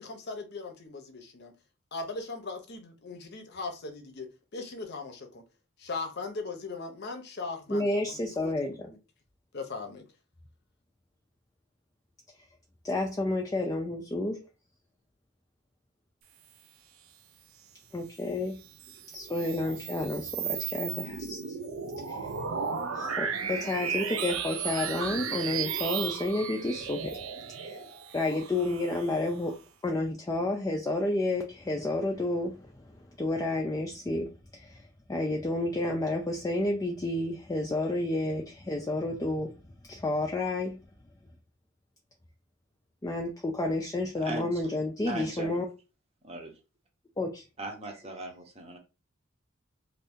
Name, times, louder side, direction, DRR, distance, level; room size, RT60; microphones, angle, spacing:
voice 1, 0.0-1.5 1.9-5.4 5.8-9.0 9.5-10.0, left 3 dB, 55° left, 0.7 m, -39 dB
voice 2, 7.7-8.9 12.8-14.4 17.9-18.6 19.1-21.6 22.0-22.3 22.9-27.2 27.6-27.8 28.1-29.6 29.8-39.5 39.9-40.8 43.0-45.6 47.2-47.4, left 2 dB, 15° left, 0.4 m, -30 dB
sound 1, 18.6-29.5, right 7 dB, 75° right, 0.5 m, -35 dB
voice 3, 45.0-45.6 46.2-46.5 47.6-48.8, right 2 dB, 30° right, 0.7 m, -38 dB
2.7 x 2.6 x 3.5 m
head